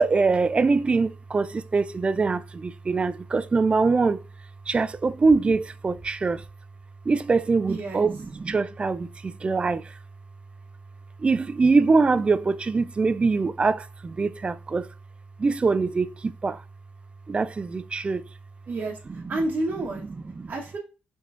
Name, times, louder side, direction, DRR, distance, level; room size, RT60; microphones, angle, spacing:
voice 1, 0.0-4.2 4.7-6.4 7.1-10.0 11.2-14.9 15.4-16.6 17.3-18.2 19.1-19.4 20.0-20.5, right 4 dB, 30° right, 0.3 m, -23 dB
voice 2, 7.7-8.0 18.7-19.0 19.3-20.0 20.5-20.8, right 2 dB, 50° right, 1.0 m, -29 dB
5.1 x 3.3 x 2.4 m
cardioid pair, 85°, 4 cm